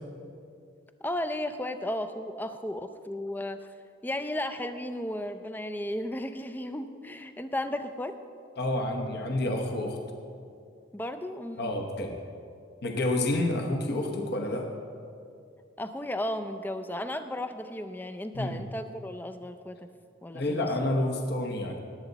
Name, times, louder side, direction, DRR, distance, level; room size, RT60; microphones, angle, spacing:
voice 1, 1.0-3.7 4.0-8.2 10.9-11.7 15.8-19.8 20.2-20.7, left 1 dB, 10° left, 9 dB, 0.4 m, -34 dB
voice 2, 8.6-10.0 11.6-12.2 12.8-14.7 18.3-18.6 20.3-21.8, left 1 dB, 50° left, 2 dB, 1.0 m, -29 dB
19.0 x 7.9 x 4.1 m, 2.4 s
head